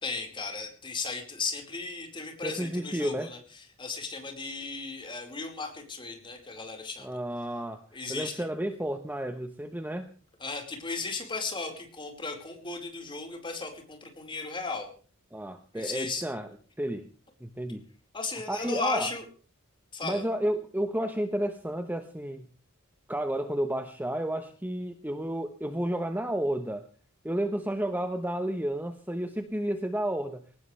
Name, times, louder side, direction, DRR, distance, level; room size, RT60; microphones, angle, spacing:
voice 1, 0.0-7.2 7.9-8.4 10.4-14.9 15.7-16.2 18.1-19.2 19.9-20.2, left 4 dB, 25° left, 3 dB, 4.7 m, -36 dB
voice 2, 2.4-3.3 7.0-7.8 8.1-10.1 15.3-16.5 16.8-17.1 17.4-17.8 18.5-19.1 20.0-22.5 23.1-26.9 27.2-30.4, right 1 dB, 10° right, 7 dB, 1.1 m, -31 dB
22.0 x 19.0 x 3.4 m, 0.40 s
head